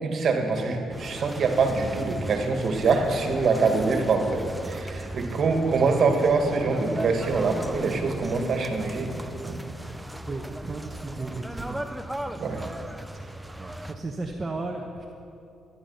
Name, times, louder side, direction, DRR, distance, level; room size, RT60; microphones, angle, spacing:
voice 1, 0.0-9.1 9.4-9.6 12.4-12.6, right 4 dB, 55° right, 4 dB, 1.9 m, -24 dB
sound 1, 0.9-13.9, right 1 dB, 5° right, 0.7 m, -37 dB
voice 2, 10.3-11.8 12.4-12.8 13.6-15.1, right 3 dB, 30° right, 1 dB, 1.2 m, -35 dB
14.0 x 10.5 x 5.7 m, 2.6 s
cardioid pair, 90°, 0 cm